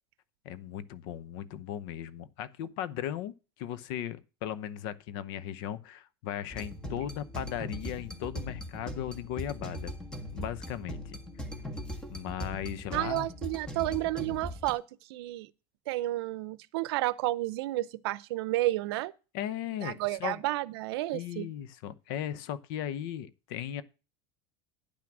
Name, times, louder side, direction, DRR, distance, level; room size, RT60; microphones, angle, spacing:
voice 1, 0.4-9.9 10.3-11.2 12.1-13.3 19.3-20.4 21.1-23.8, left 10 dB, 65° left, 0.9 m, -37 dB
sound 1, 6.5-14.7, left 1 dB, 5° left, 1.5 m, -40 dB
voice 2, 12.9-14.8 15.1-15.5 15.9-19.1 19.8-21.5, right 17 dB, 80° right, 0.6 m, -31 dB
10.0 x 6.1 x 6.1 m
supercardioid pair, 145°, 13 cm